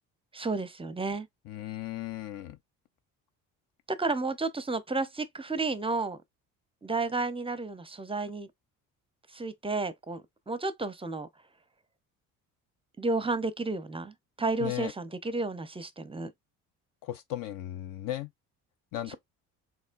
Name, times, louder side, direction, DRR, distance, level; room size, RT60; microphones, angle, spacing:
voice 1, 0.3-1.3 3.9-6.2 6.8-8.5 9.3-10.2 10.5-11.3 13.0-16.3 19.1-19.2, right 3 dB, 15° right, 0.6 m, -32 dB
voice 2, 1.5-2.6 14.6-14.9 17.0-18.3 18.9-19.2, left 13 dB, 55° left, 0.5 m, -36 dB
4.2 x 2.9 x 2.4 m
hypercardioid pair, 55°, 43 cm